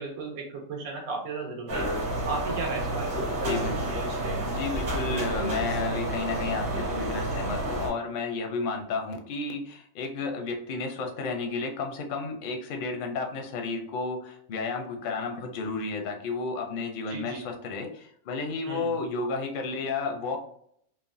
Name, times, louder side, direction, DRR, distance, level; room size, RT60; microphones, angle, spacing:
voice 1, 0.0-1.9 2.3-3.2 17.1-17.4 18.7-18.9, right 3 dB, 85° right, 1 dB, 1.2 m, -35 dB
sound 1, 1.7-7.9, right 1 dB, 50° right, 1.0 m, -30 dB
voice 2, 3.4-4.0 4.4-20.4, left 4 dB, 60° left, 3 dB, 0.6 m, -32 dB
3.3 x 2.1 x 2.5 m, 0.66 s
omnidirectional pair, 1.4 m